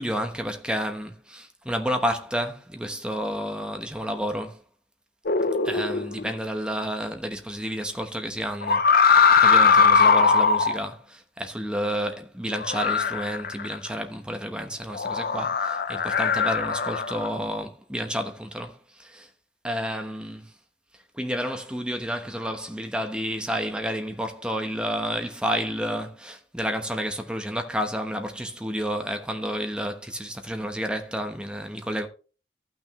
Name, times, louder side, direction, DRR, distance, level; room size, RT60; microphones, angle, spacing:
voice 1, 0.0-4.6 5.6-19.3 19.6-20.4 21.1-32.1, equal, 5° right, 1.0 m, -30 dB
sound 1, 5.3-6.3 8.6-10.8 12.5-13.9 15.0-17.3, left 5 dB, 55° left, 0.7 m, -20 dB
14.5 x 6.0 x 3.1 m
head